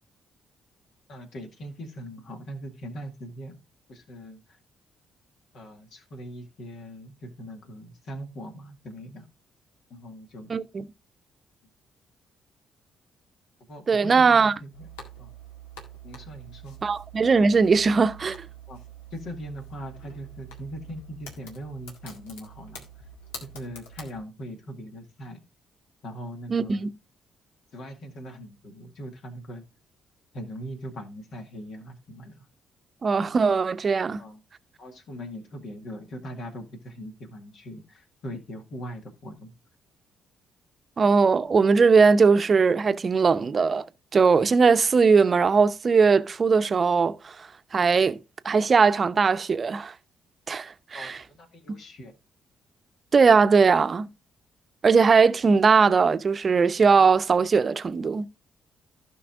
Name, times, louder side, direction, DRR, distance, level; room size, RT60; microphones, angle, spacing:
voice 1, 1.1-3.6 3.9-4.6 5.5-9.3 9.9-10.6 13.7-14.9 15.2-15.3 16.0-16.8 18.7-18.8 19.1-22.8 23.4-25.4 26.0-26.9 27.7-29.6 30.3-32.5 34.2-34.4 34.8-39.5 50.9-52.1, equal, 60° left, 2.1 m, -40 dB
voice 2, 10.5-10.8 13.9-14.5 16.8-18.4 26.5-26.9 33.0-34.2 41.0-43.8 44.1-47.3 47.7-48.2 48.4-49.9 50.5-51.2 53.1-54.1 54.8-58.3, right 5 dB, 40° right, 0.7 m, -20 dB
sound 1, 14.7-24.2, right 3 dB, 75° left, 1.8 m, -45 dB
15.5 x 5.5 x 2.5 m
figure-of-eight pair, 40°, 0 cm